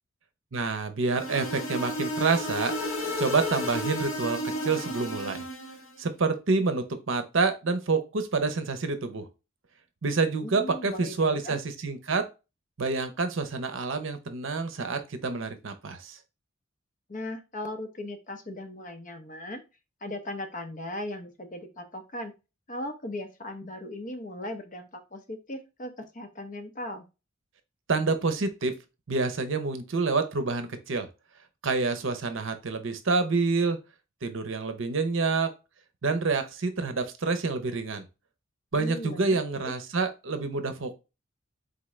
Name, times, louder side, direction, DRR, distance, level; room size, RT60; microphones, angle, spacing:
voice 1, 0.5-2.7 3.2-5.4 6.0-9.3 10.0-12.3 12.8-16.2 27.9-28.7 29.1-31.1 31.6-33.8 34.2-35.5 36.0-38.0 38.7-41.0, right 4 dB, 65° right, 9 dB, 0.7 m, -28 dB
sound 1, 1.1-5.9, equal, 80° left, 1.3 m, -32 dB
voice 2, 10.4-11.6 17.1-19.6 20.0-22.3 22.7-27.0 38.8-39.6, left 1 dB, 40° left, 6 dB, 0.8 m, -38 dB
4.1 x 3.6 x 3.2 m, 0.28 s
head